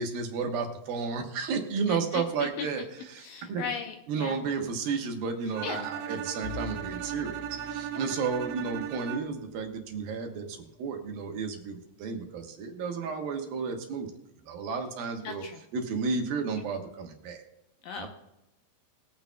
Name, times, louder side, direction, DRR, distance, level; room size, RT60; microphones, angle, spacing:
voice 1, 0.0-2.8 3.1-3.6 4.1-14.1 14.5-15.4 15.7-17.4 18.0-18.1, right 5 dB, 70° right, 3 dB, 2.8 m, -32 dB
voice 2, 1.9-2.7 3.2-4.4 5.6-6.2 7.9-8.1 15.2-15.6 17.8-18.1, left 6 dB, 75° left, 4 dB, 2.2 m, -38 dB
Bowed string instrument, 5.6-9.5, right 10 dB, 85° right, 2.6 m, -37 dB
Bowed string instrument 2, 6.4-11.5, left 9 dB, 60° left, 2.4 m, -48 dB
21.5 x 8.8 x 2.2 m, 0.93 s
omnidirectional pair, 4.6 m